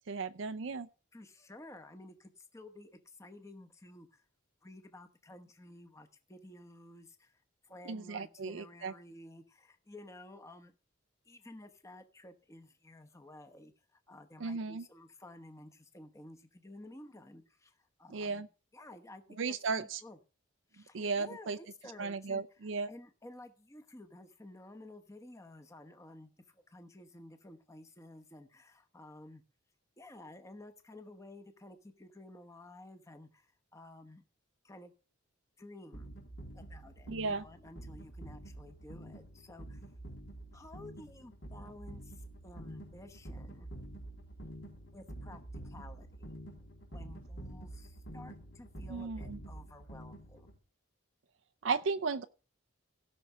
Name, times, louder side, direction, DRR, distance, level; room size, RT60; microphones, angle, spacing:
voice 1, 0.1-0.9 7.9-8.9 14.4-14.8 18.1-18.5 19.4-20.0 20.9-21.6 22.0-22.9 37.1-37.4 48.9-49.4 51.6-52.2, right 4 dB, 70° right, 0.5 m, -35 dB
voice 2, 1.1-4.2 4.6-10.7 11.2-18.5 18.7-20.2 20.7-29.4 30.0-34.2 34.6-34.9 35.6-36.1 36.5-39.8 40.5-43.7 44.9-46.3 46.9-50.5, left 1 dB, 15° left, 1.1 m, -53 dB
sound 1, 35.9-50.6, right 1 dB, 70° left, 4.0 m, -48 dB
16.5 x 6.1 x 5.5 m
head